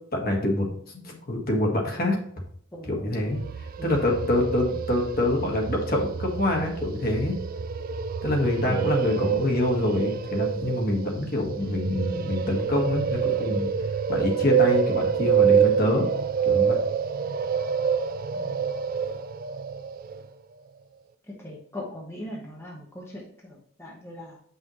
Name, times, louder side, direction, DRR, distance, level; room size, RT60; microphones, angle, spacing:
voice 1, 0.1-0.7 1.0-2.2 2.8-3.4 3.8-7.3 8.2-13.7 14.1-16.1 16.4-16.8, left 1 dB, 50° left, 0 dB, 1.7 m, -26 dB
voice 2, 2.7-3.5 3.8-4.0 8.7-9.5 11.6-11.8 18.3-18.7 21.4-24.4, left 1 dB, 10° left, -3 dB, 1.1 m, -40 dB
sound 1, 3.3-20.2, right 7 dB, 45° right, 0.4 m, -27 dB
8.5 x 5.6 x 3.1 m, 0.64 s
head